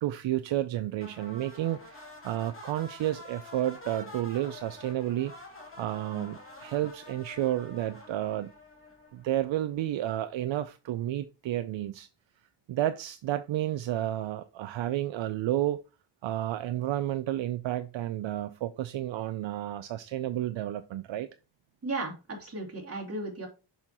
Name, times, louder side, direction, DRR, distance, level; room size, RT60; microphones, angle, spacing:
voice 1, 0.0-5.3 5.8-8.5 9.1-12.1 12.7-15.8 16.2-21.3, right 13 dB, 70° right, 0.5 m, -31 dB
sound 1, 1.0-9.4, left 2 dB, 25° left, 2.6 m, -48 dB
voice 2, 21.8-23.5, right 2 dB, 30° right, 2.8 m, -35 dB
6.7 x 5.6 x 2.9 m
wide cardioid pair, 125°, 47 cm